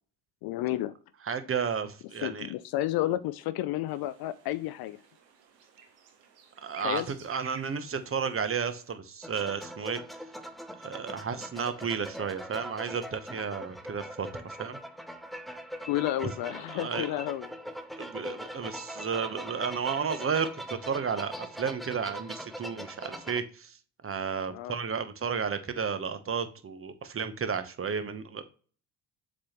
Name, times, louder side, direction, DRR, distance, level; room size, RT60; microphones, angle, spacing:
voice 1, 0.4-0.9 2.2-5.0 6.8-7.1 15.9-17.5 24.5-24.8, left 14 dB, 50° left, 0.5 m, -31 dB
voice 2, 1.3-2.5 6.6-10.0 10.8-14.8 16.4-17.2 18.0-23.8 24.0-28.4, right 6 dB, 25° right, 0.9 m, -33 dB
sound 1, 3.9-8.9, right 7 dB, 75° right, 1.4 m, -53 dB
sound 2, 9.2-23.4, equal, ahead, 0.7 m, -42 dB
7.3 x 4.2 x 3.0 m
hypercardioid pair, 55°, 49 cm